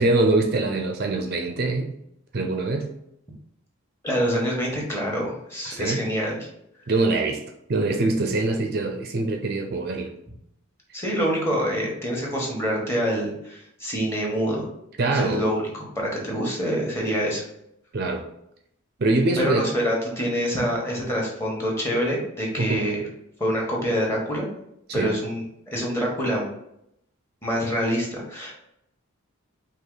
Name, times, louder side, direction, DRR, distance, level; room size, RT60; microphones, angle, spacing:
voice 1, 0.0-1.9 2.3-2.9 5.7-6.0 6.9-7.4 7.7-10.1 15.0-15.4 17.9-18.2 19.0-19.6 22.6-22.8 24.9-25.1, right 2 dB, 45° right, 4 dB, 0.5 m, -23 dB
voice 2, 4.0-6.5 10.9-14.6 15.1-15.6 15.9-17.4 19.4-23.0 23.4-24.5 24.9-25.4 25.7-26.5 27.4-28.5, equal, 10° left, -3 dB, 1.2 m, -26 dB
4.7 x 2.9 x 3.9 m, 0.78 s
head